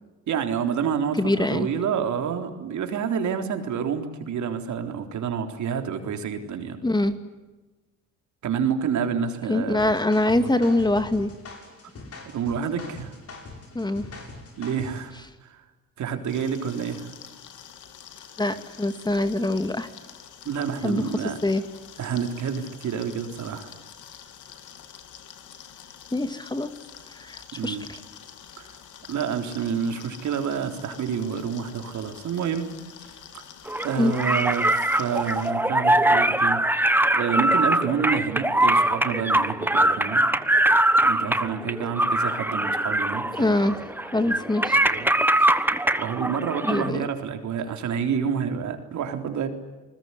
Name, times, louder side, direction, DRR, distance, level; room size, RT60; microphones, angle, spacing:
voice 1, 0.3-6.8 8.4-9.8 10.3-10.5 12.3-13.2 14.6-15.6 16.0-17.1 20.5-21.4 22.0-23.8 27.6-27.8 28.6-28.7 29.1-32.7 33.0-33.1 33.3-33.4 33.8-36.6 37.1-40.3 41.0-43.7 44.2-44.4 44.7-45.1 45.4-45.5 46.0-49.5, right 7 dB, 70° right, 5 dB, 3.8 m, -28 dB
voice 2, 1.2-1.7 6.8-7.1 9.5-11.3 13.7-14.0 18.4-19.9 20.8-21.1 21.4-21.6 26.1-26.7 27.2-27.8 33.9-34.1 43.4-44.8 46.6-47.1, left 2 dB, 15° left, 9 dB, 2.3 m, -24 dB
sound 1, 9.8-15.1, left 3 dB, 50° left, 7.9 m, -42 dB
sound 2, 16.3-35.5, left 9 dB, 80° left, 3.0 m, -46 dB
sound 3, 33.7-46.9, right 1 dB, 5° right, 1.3 m, -22 dB
28.0 x 20.5 x 9.9 m, 1.2 s
cardioid pair, 90°, 30 cm